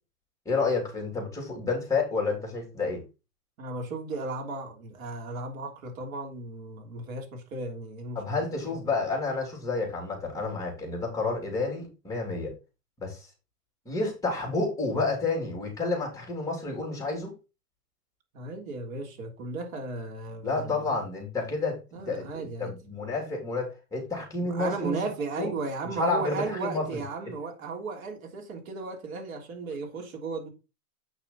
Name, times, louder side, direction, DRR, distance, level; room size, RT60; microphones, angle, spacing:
voice 1, 0.4-3.0 8.1-12.5 13.0-13.3 13.8-17.3 20.4-21.8 22.1-25.0 25.4-25.5 26.0-27.0, left 3 dB, 5° left, 3.4 m, -30 dB
voice 2, 3.6-8.4 18.3-20.9 21.9-22.7 24.4-30.5, right 3 dB, 65° right, 3.4 m, -35 dB
8.8 x 5.8 x 4.1 m
hypercardioid pair, 140°, 45 cm